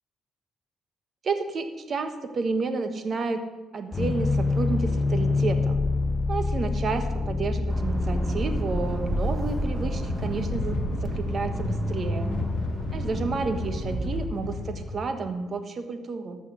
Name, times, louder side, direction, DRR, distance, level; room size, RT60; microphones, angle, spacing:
voice 1, 1.2-3.4 3.7-5.8 6.3-12.3 12.9-16.4, right 4 dB, 45° right, 7 dB, 1.3 m, -31 dB
sound 1, 3.9-11.1, left 3 dB, 35° left, 0.6 m, -27 dB
Accelerating revving vroom, 7.7-14.3, right 1 dB, 10° right, 1.4 m, -31 dB
sound 2, 10.0-15.0, left 3 dB, 80° left, 1.1 m, -33 dB
13.5 x 6.2 x 6.2 m, 1.2 s
cardioid pair, 90°, 0 cm